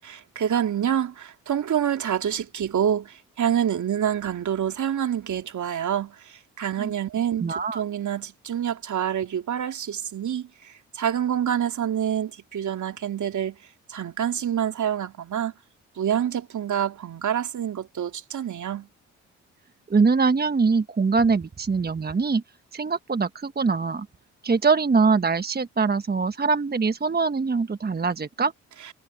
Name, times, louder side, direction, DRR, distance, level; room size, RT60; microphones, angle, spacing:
voice 1, 0.4-7.5 7.7-13.6 13.9-15.5 16.0-18.9, right 9 dB, 55° right, 3.4 m, -27 dB
voice 2, 7.4-7.8 19.9-22.4 22.7-24.1 24.4-28.5, right 4 dB, 25° right, 1.3 m, -23 dB
hypercardioid pair, 50°, 35 cm